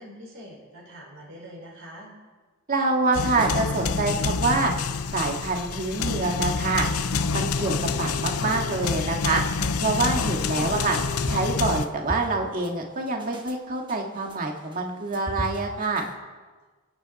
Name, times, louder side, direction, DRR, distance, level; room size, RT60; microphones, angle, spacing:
voice 1, 0.0-2.1, equal, 65° right, -2 dB, 5.3 m, -44 dB
voice 2, 2.7-4.7 5.1-6.9 7.3-9.4 9.8-11.0 11.3-16.1, right 3 dB, 40° right, 1 dB, 2.0 m, -26 dB
sound 1, 3.0-16.1, equal, 20° right, 1.3 m, -42 dB
sound 2, 3.1-11.8, left 4 dB, 85° left, 0.7 m, -27 dB
29.5 x 10.0 x 4.2 m, 1.3 s
head